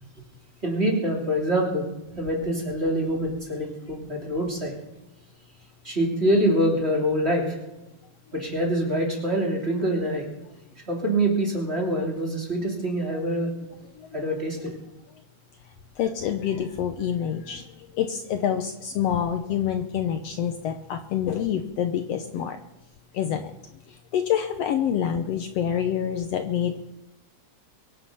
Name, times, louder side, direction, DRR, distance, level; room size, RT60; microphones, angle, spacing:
voice 1, 0.6-1.9 2.2-4.7 5.8-7.6 8.3-10.3 10.9-13.5 14.1-14.8, right 1 dB, 20° right, -1 dB, 3.2 m, -25 dB
voice 2, 16.0-22.6 23.1-23.5 23.9-26.9, left 9 dB, 70° left, 7 dB, 1.8 m, -27 dB
23.0 x 8.5 x 5.7 m, 0.97 s
omnidirectional pair, 3.3 m